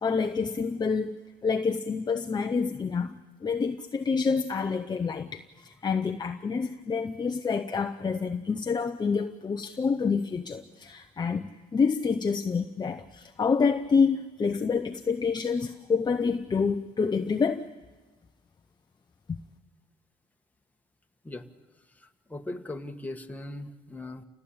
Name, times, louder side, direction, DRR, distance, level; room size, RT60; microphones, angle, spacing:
voice 1, 0.0-17.7 19.3-19.4, left 5 dB, 25° left, 7 dB, 0.9 m, -28 dB
voice 2, 22.0-24.2, left 2 dB, 10° left, 4 dB, 1.8 m, -39 dB
30.0 x 18.0 x 8.8 m, 1.3 s
cardioid pair, 110°, 17 cm